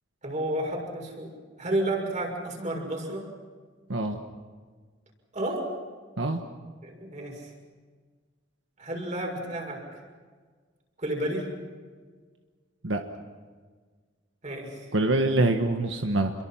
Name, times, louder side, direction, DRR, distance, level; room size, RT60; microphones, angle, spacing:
voice 1, 0.2-1.3 1.6-3.3 5.3-5.7 6.8-7.5 8.8-9.8 11.0-11.5 14.4-14.9, right 1 dB, 40° right, 1 dB, 6.4 m, -31 dB
voice 2, 14.9-16.3, right 2 dB, 85° right, 4 dB, 1.5 m, -24 dB
28.0 x 23.0 x 5.8 m, 1.5 s
head